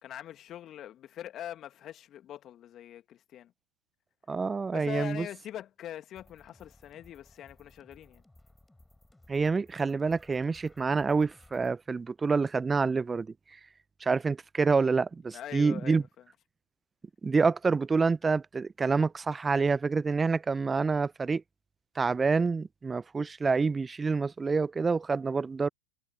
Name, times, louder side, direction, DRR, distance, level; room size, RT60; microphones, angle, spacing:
voice 1, 0.0-3.5 4.7-8.2 15.3-16.1, left 11 dB, 30° left, 2.1 m, -42 dB
voice 2, 4.3-5.3 9.3-13.3 14.0-16.0 17.2-21.4 22.0-25.7, right 4 dB, 15° right, 0.6 m, -27 dB
sound 1, 6.1-11.7, left 2 dB, 5° left, 5.0 m, -59 dB
figure-of-eight pair, 95°, 0 cm